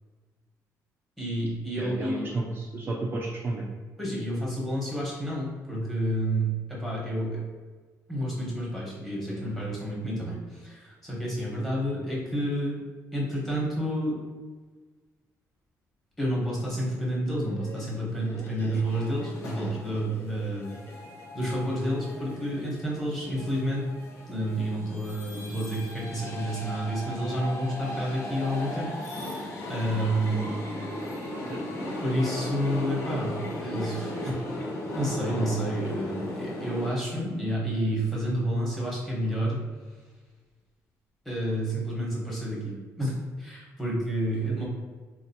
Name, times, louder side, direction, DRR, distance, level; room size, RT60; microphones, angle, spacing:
voice 1, 1.2-2.1 4.0-7.4 8.1-12.8 13.1-14.2 16.2-20.7 21.3-23.9 24.3-30.5 32.0-34.4 34.9-39.6 41.2-44.6, right 1 dB, 5° left, -6 dB, 1.1 m, -30 dB
voice 2, 1.8-3.6 31.5-31.6 44.5-44.6, right 2 dB, 35° right, -2 dB, 0.4 m, -32 dB
Laughter, 17.3-22.3, left 3 dB, 35° left, 0.4 m, -47 dB
sound 1, 18.8-36.9, left 1 dB, 50° left, 0.8 m, -37 dB
4.2 x 2.4 x 2.7 m, 1.4 s
cardioid pair, 145°, 7 cm